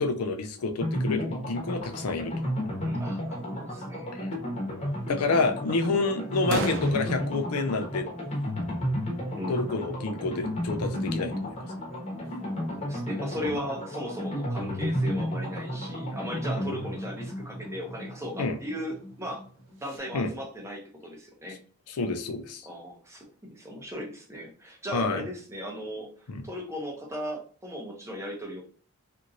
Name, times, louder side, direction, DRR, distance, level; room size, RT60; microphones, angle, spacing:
voice 1, 0.0-2.4 4.1-4.3 5.1-8.1 9.5-11.6 13.4-13.6 18.4-18.6 20.1-20.3 21.9-22.6 24.9-25.2 26.3-26.4, left 3 dB, 85° left, 7 dB, 0.5 m, -28 dB
sound 1, 0.8-19.4 19.7-19.8 20.0-20.1, equal, 30° left, 1.0 m, -32 dB
voice 2, 2.8-4.1 9.4-9.6 12.4-19.4 19.8-21.6 22.6-28.6, equal, 15° right, 0 dB, 0.6 m, -37 dB
sound 2, 4.9-20.0, right 3 dB, 60° right, 0.6 m, -43 dB
2.9 x 2.5 x 2.5 m, 0.42 s
head